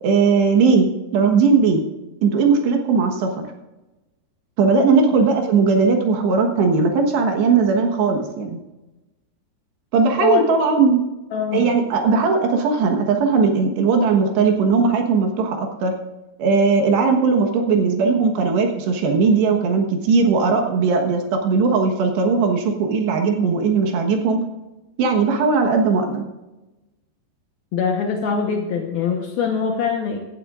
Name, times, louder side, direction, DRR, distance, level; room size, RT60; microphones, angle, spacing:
voice 1, 0.0-0.9 1.1-1.8 2.2-3.3 4.6-8.6 9.9-11.0 11.5-15.9 16.4-24.4 25.0-26.2, right 4 dB, 70° right, 3 dB, 3.2 m, -18 dB
voice 2, 11.3-11.8 27.7-30.2, left 6 dB, 70° left, 1 dB, 2.5 m, -22 dB
17.5 x 12.0 x 2.5 m, 1.1 s
omnidirectional pair, 5.6 m